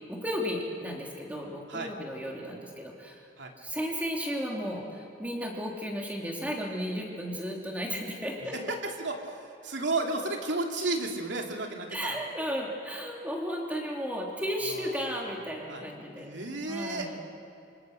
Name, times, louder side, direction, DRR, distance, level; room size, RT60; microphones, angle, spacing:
voice 1, 0.1-3.2 3.6-8.5 11.9-16.3 16.6-17.2, equal, 10° right, -1 dB, 3.3 m, -34 dB
voice 2, 8.4-12.2 14.7-15.2 15.7-15.8 16.1-17.1, right 2 dB, 75° right, 2 dB, 2.9 m, -33 dB
27.0 x 25.0 x 6.7 m, 2.7 s
head